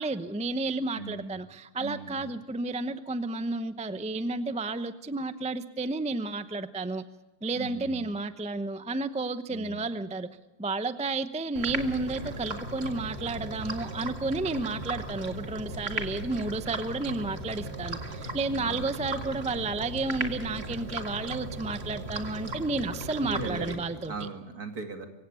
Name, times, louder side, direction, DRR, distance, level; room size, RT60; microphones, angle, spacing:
voice 1, 0.0-7.0 7.4-10.3 10.6-24.3, right 3 dB, 5° right, 0.5 m, -32 dB
voice 2, 0.9-1.4 1.8-2.3 7.5-8.1 9.5-9.8 18.5-18.9 23.2-25.1, right 4 dB, 70° right, 2.9 m, -39 dB
sound 1, 11.6-24.3, right 2 dB, 40° right, 2.3 m, -37 dB
24.5 x 17.0 x 7.0 m
omnidirectional pair, 1.7 m